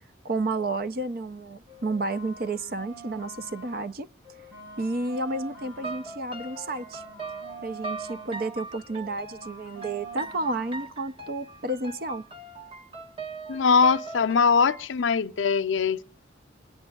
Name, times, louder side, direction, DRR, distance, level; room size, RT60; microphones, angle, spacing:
voice 1, 0.2-4.1 4.8-7.0 7.6-12.2, right 2 dB, 50° right, 0.5 m, -31 dB
sound 1, 1.6-3.9 4.2-8.6 8.9-10.9, right 2 dB, 90° right, 6.9 m, -45 dB
sound 2, 5.8-14.9, right 3 dB, 25° right, 1.2 m, -40 dB
voice 2, 13.5-16.0, left 5 dB, 80° left, 0.5 m, -22 dB
25.5 x 9.8 x 2.3 m
head